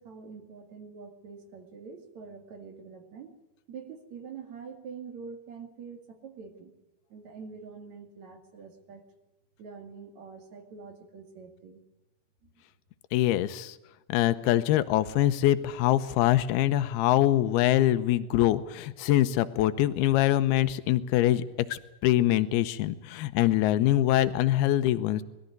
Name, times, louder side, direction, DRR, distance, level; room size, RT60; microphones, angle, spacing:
voice 1, 0.0-3.3 3.7-6.7 7.1-9.1 9.6-11.8 12.4-12.5, right 5 dB, 50° right, 5 dB, 3.3 m, -45 dB
voice 2, 13.1-13.8 14.1-21.5 21.7-25.2, left 13 dB, 85° left, 12 dB, 2.9 m, -24 dB
22.0 x 14.0 x 9.5 m, 1.0 s
omnidirectional pair, 4.4 m